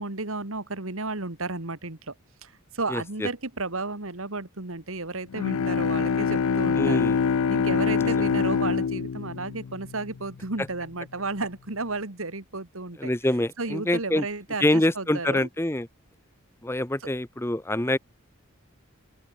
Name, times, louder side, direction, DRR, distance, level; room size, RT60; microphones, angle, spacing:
voice 1, 0.0-2.1 2.4-7.0 7.5-13.1 13.6-15.5 17.0-17.1, right 3 dB, 70° right, 2.3 m, -33 dB
voice 2, 2.9-3.3 6.8-7.2 8.0-8.1 13.0-14.2 14.6-15.9 16.6-18.0, left 1 dB, 10° left, 0.8 m, -25 dB
Bowed string instrument, 5.3-10.4, left 6 dB, 80° left, 0.5 m, -25 dB
open air
head